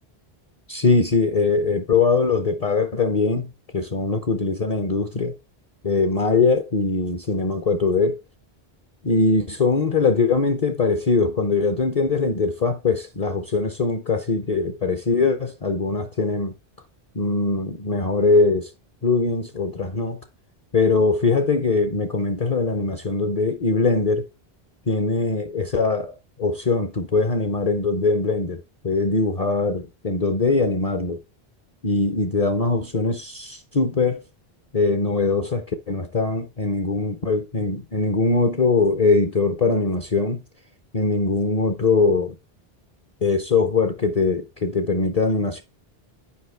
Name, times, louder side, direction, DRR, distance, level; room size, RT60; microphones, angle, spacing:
voice 1, 0.7-3.5 3.7-5.3 5.8-8.2 9.0-16.5 17.1-18.7 19.0-20.2 20.7-24.2 24.9-31.2 31.8-34.2 34.7-40.4 40.9-42.3 43.2-45.6, left 3 dB, 40° left, 0.7 m, -21 dB
8.5 x 4.9 x 3.2 m
omnidirectional pair, 1.1 m